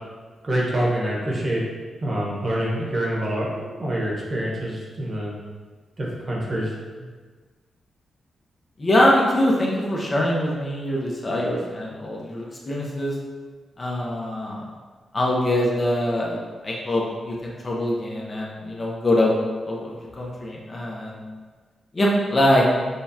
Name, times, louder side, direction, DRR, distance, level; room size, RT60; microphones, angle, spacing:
voice 1, 0.4-1.7 2.0-5.4 6.0-6.7 7.0-7.1, right 1 dB, 35° right, -4 dB, 1.1 m, -26 dB
voice 2, 8.8-13.1 13.8-14.6 15.1-16.4 16.6-19.3 19.6-21.2 21.9-22.6, left 1 dB, 30° left, -3 dB, 0.7 m, -23 dB
6.6 x 2.3 x 2.8 m, 1.5 s
wide cardioid pair, 115°, 0 cm